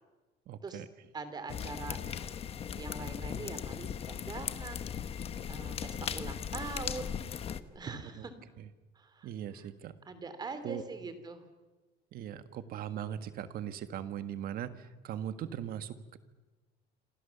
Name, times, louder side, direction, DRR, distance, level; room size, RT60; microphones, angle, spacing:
voice 1, 0.5-0.9 7.9-8.0 8.6-8.7 9.2-10.0 10.6-10.8 12.1-16.2, right 10 dB, 50° right, 10 dB, 1.7 m, -39 dB
voice 2, 1.1-2.0 2.5-7.2 7.7-8.3 8.9-9.3 9.5-9.7 10.0-11.4, right 4 dB, 20° right, 10 dB, 2.9 m, -43 dB
sound 1, 1.5-7.6, left 8 dB, 30° left, 1.1 m, -38 dB
27.5 x 27.0 x 7.1 m, 1.2 s
cardioid pair, 165°, 19 cm